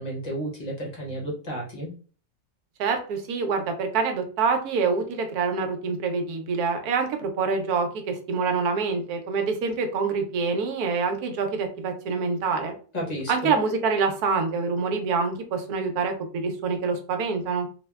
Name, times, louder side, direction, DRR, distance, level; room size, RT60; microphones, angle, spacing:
voice 1, 0.0-1.9 12.9-13.5, equal, 35° left, -3 dB, 0.8 m, -32 dB
voice 2, 2.8-12.7 13.3-17.7, right 4 dB, 80° right, 5 dB, 1.1 m, -26 dB
3.3 x 2.1 x 2.2 m, 0.40 s
omnidirectional pair, 1.6 m